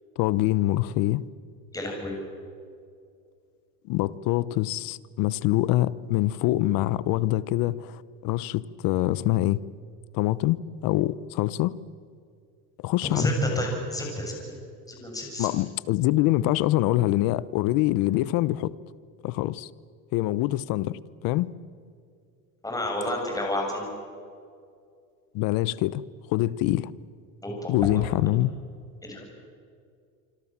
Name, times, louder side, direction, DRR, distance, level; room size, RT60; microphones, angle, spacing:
voice 1, 0.2-1.2 3.9-9.6 10.1-11.8 12.8-13.3 15.4-18.7 19.2-19.7 20.1-21.5 25.3-26.0 26.3-26.9 27.7-28.5, left 16 dB, 55° left, 19 dB, 1.0 m, -25 dB
voice 2, 1.7-2.1 13.0-14.4 14.9-15.5 22.6-23.9 27.4-28.0 29.0-29.2, left 1 dB, 10° left, 0 dB, 7.2 m, -30 dB
27.0 x 25.5 x 7.5 m, 2.3 s
supercardioid pair, 120°, 41 cm